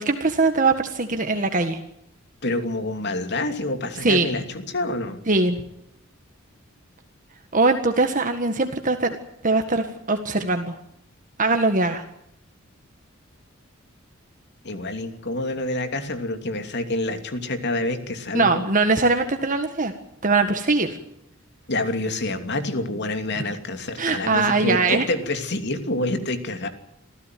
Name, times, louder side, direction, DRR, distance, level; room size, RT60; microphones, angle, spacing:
voice 1, 0.0-1.8 4.0-4.3 5.3-5.6 7.5-9.2 9.4-10.8 11.4-12.0 18.3-19.9 20.2-21.0 24.0-25.1, right 3 dB, 40° right, 6 dB, 1.7 m, -21 dB
voice 2, 2.4-5.2 14.6-18.6 21.7-26.7, left 2 dB, 55° left, 8 dB, 2.8 m, -27 dB
26.5 x 15.5 x 9.3 m, 0.76 s
head